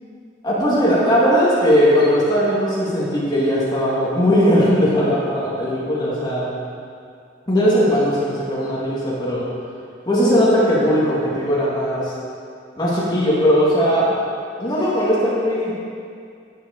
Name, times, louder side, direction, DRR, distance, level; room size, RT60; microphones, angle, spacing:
voice 1, 0.4-6.5 7.5-9.5 10.1-12.1 12.8-14.1 14.6-15.7, equal, 25° left, -7 dB, 2.2 m, -18 dB
9.4 x 8.1 x 4.1 m, 2.4 s
head